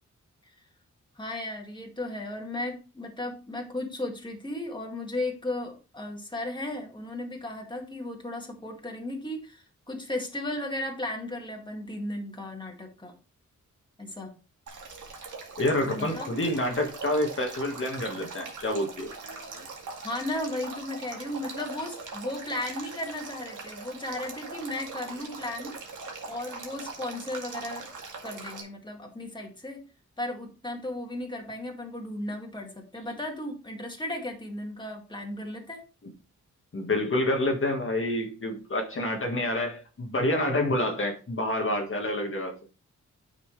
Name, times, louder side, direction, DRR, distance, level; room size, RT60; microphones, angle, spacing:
voice 1, 1.2-13.1 14.0-14.3 15.9-16.3 20.0-25.7 26.2-27.9 28.2-29.8 30.2-35.8, left 1 dB, 15° left, 2.1 m, -35 dB
Male speech man speaking / Stream / Trickle dribble, 14.7-28.6, right 4 dB, 85° right, 2.1 m, -41 dB
voice 2, 15.6-19.1 36.7-42.6, left 1 dB, 45° left, 1.6 m, -28 dB
9.0 x 5.9 x 3.2 m
wide cardioid pair, 100°, 30 cm